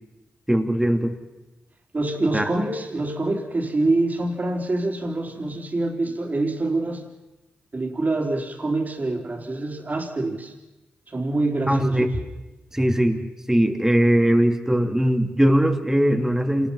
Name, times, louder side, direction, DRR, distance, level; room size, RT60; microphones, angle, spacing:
voice 1, 0.5-1.1 2.3-2.4 11.7-12.1 12.7-16.7, right 1 dB, 10° right, 4 dB, 2.8 m, -20 dB
voice 2, 1.9-7.0 7.7-10.5 11.1-12.0, right 2 dB, 40° right, 2 dB, 4.0 m, -25 dB
27.5 x 20.5 x 5.8 m, 1.1 s
supercardioid pair, 45°, 4 cm